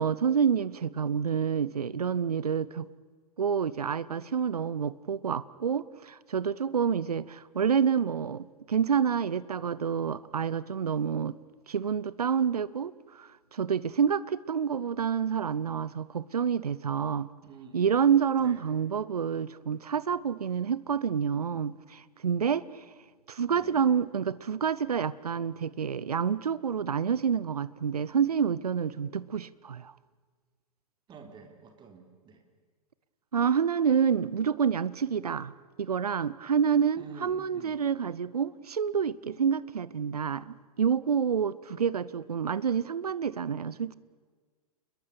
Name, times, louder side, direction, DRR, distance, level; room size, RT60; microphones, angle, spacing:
voice 1, 0.0-2.9 3.4-11.4 11.7-17.3 17.7-22.6 23.3-29.9 33.3-35.5 35.8-43.9, right 7 dB, 75° right, 0.8 m, -28 dB
voice 2, 17.4-17.9 18.4-18.6 23.4-23.9 31.1-32.4 37.0-37.8, right 5 dB, 25° right, 3.6 m, -49 dB
30.0 x 22.0 x 6.9 m
figure-of-eight pair, 105°, 20 cm